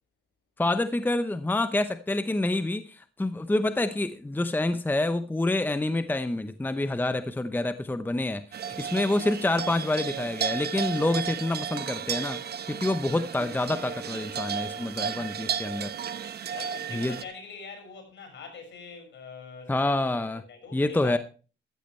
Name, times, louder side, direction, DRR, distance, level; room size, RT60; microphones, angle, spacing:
voice 1, 0.6-12.4 12.7-15.9 16.9-17.2 19.7-20.4 20.7-21.2, left 2 dB, 10° left, 0.8 m, -27 dB
sound 1, 8.5-17.2, right 8 dB, 55° right, 1.0 m, -33 dB
voice 2, 15.5-16.2 16.5-21.2, left 5 dB, 65° left, 6.1 m, -44 dB
14.0 x 13.5 x 3.2 m
cardioid pair, 90°, 20 cm